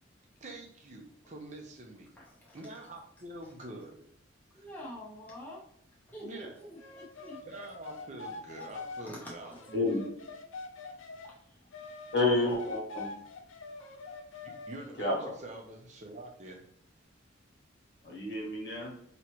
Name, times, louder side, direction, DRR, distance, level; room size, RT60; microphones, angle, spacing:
voice 1, 0.4-2.2 2.5-4.1 4.5-4.7 6.2-6.6 7.4-10.1 14.4-16.7, right 2 dB, 35° right, 2 dB, 0.6 m, -46 dB
voice 2, 2.2-2.6 4.5-5.6 6.1-7.4 9.1-9.6 11.3-11.6, equal, 10° left, -5 dB, 0.7 m, -46 dB
sound 1, 6.8-11.3 11.7-14.9, left 3 dB, 85° left, 0.6 m, -44 dB
voice 3, 9.7-10.0 12.1-13.1 15.0-15.3 18.0-18.9, left 2 dB, 60° left, -3 dB, 1.6 m, -29 dB
4.7 x 3.0 x 3.0 m, 0.67 s
head